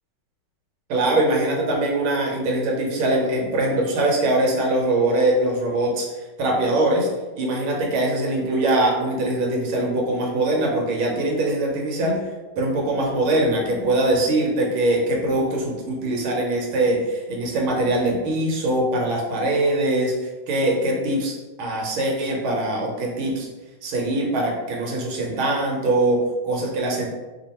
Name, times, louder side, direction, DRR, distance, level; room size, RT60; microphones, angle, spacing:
voice 1, 0.9-6.1 6.4-7.1 7.3-12.2 12.6-23.5 23.8-27.1, right 1 dB, 75° right, -1 dB, 1.6 m, -22 dB
3.4 x 2.4 x 4.2 m, 1.2 s
omnidirectional pair, 2.4 m